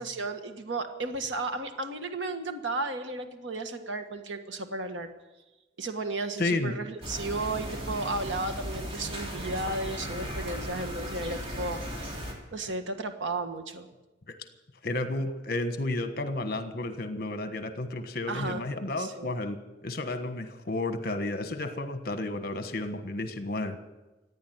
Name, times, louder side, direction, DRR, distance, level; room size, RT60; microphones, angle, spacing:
voice 1, 0.0-5.1 5.8-12.1 12.5-13.9 18.3-18.6 19.0-19.4, right 2 dB, 85° right, 6 dB, 1.5 m, -34 dB
voice 2, 6.4-6.7 14.3-14.4 14.8-19.6 19.8-23.8, left 2 dB, 55° left, 9 dB, 1.4 m, -32 dB
sound 1, 7.0-12.3, equal, 30° right, 3.3 m, -36 dB
15.5 x 9.6 x 9.4 m, 1.1 s
head